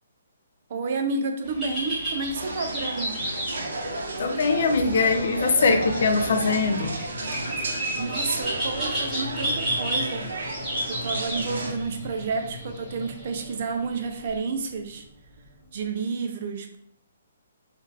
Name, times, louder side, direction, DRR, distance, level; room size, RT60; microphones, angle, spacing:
voice 1, 0.7-3.2 8.0-10.3 10.9-15.0 15.7-16.8, right 4 dB, 35° right, 5 dB, 0.4 m, -30 dB
sound 1, 1.4-14.4, right 1 dB, ahead, 1.3 m, -33 dB
sound 2, 2.3-11.7, right 2 dB, 80° right, 0.7 m, -33 dB
voice 2, 4.2-7.0, left 4 dB, 45° left, 6 dB, 0.4 m, -22 dB
sound 3, 4.7-15.9, left 2 dB, 20° right, 0.8 m, -41 dB
3.7 x 2.3 x 2.8 m, 0.69 s
hypercardioid pair, 175°, 0 cm